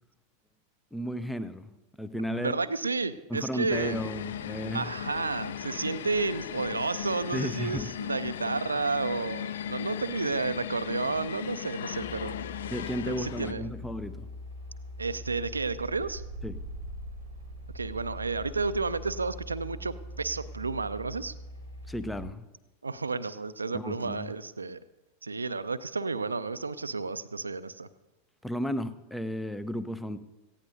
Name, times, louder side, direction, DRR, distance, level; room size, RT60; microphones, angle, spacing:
voice 1, 0.9-2.5 3.3-4.9 7.3-7.9 12.7-14.3 16.4-16.6 21.9-22.5 23.7-24.3 28.4-30.2, equal, 5° left, 13 dB, 0.6 m, -34 dB
voice 2, 2.3-4.0 4.7-12.3 13.1-13.7 15.0-16.2 17.7-21.3 22.8-24.8 25.2-27.9, right 4 dB, 80° right, 14 dB, 0.5 m, -31 dB
sound 1, 3.7-13.5, left 9 dB, 60° left, 0.3 m, -37 dB
sound 2, 11.9-22.2, equal, 80° left, 2.3 m, -42 dB
18.5 x 15.0 x 2.7 m, 1.1 s
figure-of-eight pair, 90°, 0 cm